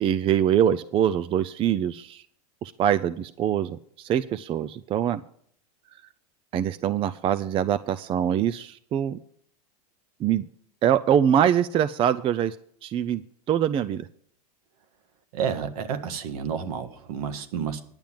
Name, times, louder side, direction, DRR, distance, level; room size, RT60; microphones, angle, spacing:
voice 1, 0.0-2.2 2.6-5.2 6.5-9.2 10.2-10.4 10.8-12.6 12.8-13.2 13.5-14.1, right 9 dB, 25° right, 13 dB, 0.4 m, -24 dB
voice 2, 15.3-17.8, right 7 dB, 70° right, 8 dB, 1.5 m, -30 dB
10.5 x 7.1 x 7.6 m, 0.62 s
hypercardioid pair, 110°, 20 cm